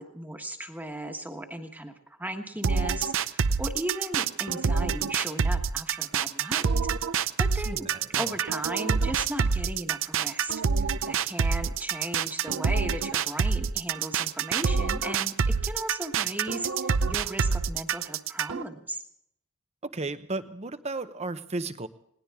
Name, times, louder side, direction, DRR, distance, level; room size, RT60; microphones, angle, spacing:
voice 1, 0.0-1.9 2.2-6.7 7.1-7.9 8.1-19.0, right 1 dB, 10° right, 4 dB, 1.4 m, -37 dB
sound 1, 2.6-18.6, right 5 dB, 60° right, 0.6 m, -26 dB
voice 2, 7.7-8.3 19.8-21.9, right 2 dB, 30° right, 11 dB, 0.8 m, -34 dB
21.0 x 18.5 x 3.6 m, 0.74 s
head